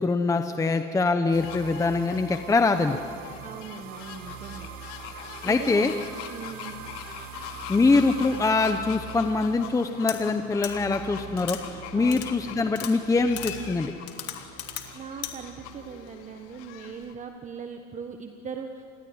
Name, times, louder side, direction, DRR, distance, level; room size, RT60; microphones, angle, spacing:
voice 1, 0.0-3.0 5.4-5.9 7.4-13.9, left 3 dB, 10° left, 7 dB, 0.8 m, -24 dB
sound 1, 1.3-16.5, right 8 dB, 55° right, 1.8 m, -44 dB
sound 2, 1.4-17.1, left 10 dB, 80° left, 2.6 m, -43 dB
voice 2, 3.4-4.7 5.4-5.9 6.3-6.8 11.9-12.3 14.9-18.8, right 6 dB, 20° right, 5 dB, 1.4 m, -39 dB
sound 3, 10.1-10.2 10.6-10.7 11.4-11.6 12.1-12.3 12.7-12.9 13.4-13.5 14.1-14.8 15.2-15.3, left 13 dB, 45° left, 2.8 m, -34 dB
28.0 x 21.0 x 9.6 m, 2.3 s
cardioid pair, 155°, 33 cm